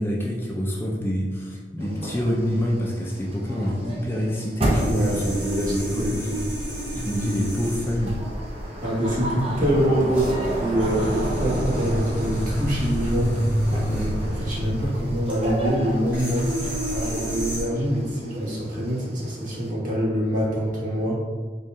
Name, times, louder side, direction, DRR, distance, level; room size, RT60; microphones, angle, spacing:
voice 1, 0.0-5.4 5.7-6.4 6.9-8.2 13.9-14.1, equal, 15° left, -2 dB, 0.4 m, -27 dB
sound 1, 1.8-19.7, right 1 dB, 35° right, 0.6 m, -33 dB
sound 2, 4.7-17.6, equal, 10° right, 1.2 m, -29 dB
voice 2, 4.9-6.1 8.8-10.3 10.6-13.4 13.9-14.1 14.4-16.5 16.9-21.2, equal, 50° right, -6 dB, 1.3 m, -25 dB
4.1 x 2.3 x 3.6 m, 1.5 s
head